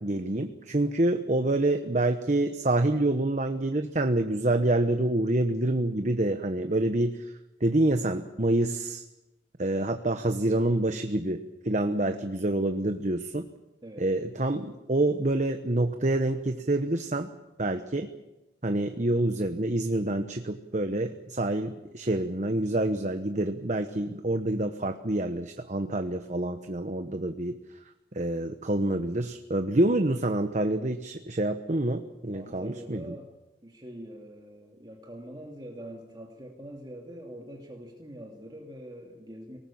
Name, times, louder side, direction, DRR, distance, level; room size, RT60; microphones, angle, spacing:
voice 1, 0.0-7.3 7.6-9.0 9.6-13.5 14.0-17.3 17.6-18.1 18.6-27.5 28.1-33.1, right 1 dB, 40° right, 7 dB, 1.1 m, -27 dB
voice 2, 32.3-33.3 33.6-39.6, equal, 25° right, 0 dB, 2.5 m, -44 dB
25.0 x 19.0 x 7.2 m, 1.0 s
head